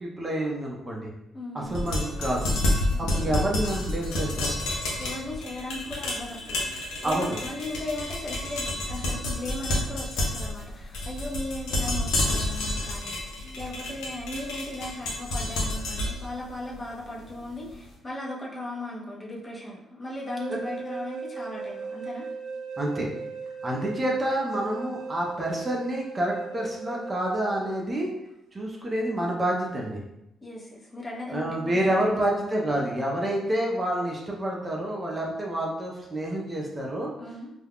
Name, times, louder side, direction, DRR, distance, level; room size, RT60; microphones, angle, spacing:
voice 1, 0.0-1.1 1.5-2.6 3.0-4.5 7.0-7.4 20.5-20.6 22.8-23.1 23.6-28.1 28.5-30.0 31.3-37.1, right 1 dB, 25° right, -1 dB, 0.5 m, -28 dB
voice 2, 1.3-1.8 2.9-3.1 5.0-13.3 13.6-22.3 30.4-32.2 37.2-37.5, left 1 dB, 30° left, -3 dB, 0.7 m, -37 dB
sound 1, 1.7-17.7, left 1 dB, 90° left, 0.6 m, -30 dB
sound 2, 20.1-27.7, right 5 dB, 70° right, 0.4 m, -38 dB
2.3 x 2.2 x 3.4 m, 0.87 s
cardioid pair, 90°, 0 cm